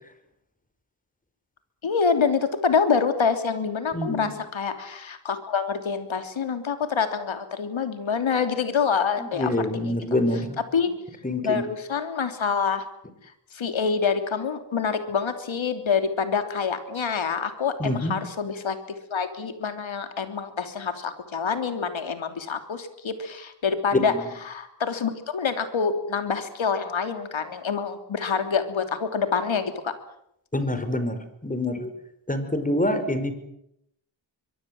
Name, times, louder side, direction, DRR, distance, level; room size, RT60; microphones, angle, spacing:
voice 1, 1.8-9.9 10.7-10.9 11.4-12.9 13.5-18.8 19.1-24.1 24.4-29.9, left 6 dB, 80° left, 8 dB, 3.3 m, -26 dB
voice 2, 3.9-4.3 9.2-10.6 11.2-11.6 17.8-18.2 23.9-24.2 30.5-31.9 32.3-33.3, left 1 dB, 15° left, 9 dB, 5.2 m, -26 dB
25.0 x 22.5 x 7.9 m, 0.77 s
wide cardioid pair, 70°, 46 cm